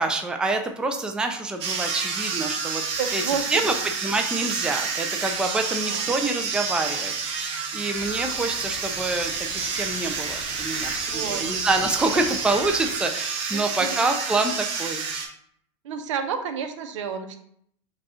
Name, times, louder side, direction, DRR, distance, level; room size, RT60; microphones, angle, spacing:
voice 1, 0.0-2.8 3.1-3.2 3.5-3.7 4.0-15.0, right 3 dB, 5° right, 4 dB, 0.4 m, -27 dB
sound 1, 1.6-15.3, right 5 dB, 40° right, 1.1 m, -29 dB
voice 2, 3.0-3.6 5.8-6.1 11.1-11.5 13.5-14.1 15.8-17.4, right 6 dB, 90° right, 7 dB, 0.7 m, -30 dB
sound 2, 7.9-13.0, left 4 dB, 40° left, 0.7 m, -43 dB
5.1 x 2.4 x 4.2 m, 0.67 s
supercardioid pair, 135°, 15 cm